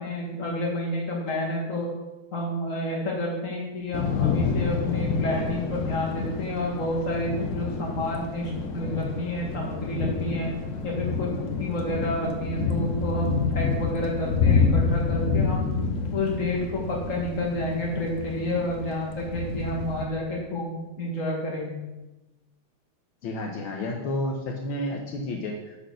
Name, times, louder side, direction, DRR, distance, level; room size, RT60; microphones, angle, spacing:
voice 1, 0.0-1.9 2.3-10.5 10.8-15.7 16.1-21.8, left 1 dB, 40° left, -2 dB, 2.4 m, -30 dB
Thunder / Rain, 3.9-20.1, left 5 dB, 55° left, 0.9 m, -28 dB
voice 2, 23.2-25.8, left 1 dB, 75° left, 1 dB, 1.8 m, -31 dB
11.0 x 4.3 x 6.3 m, 1.1 s
omnidirectional pair, 2.3 m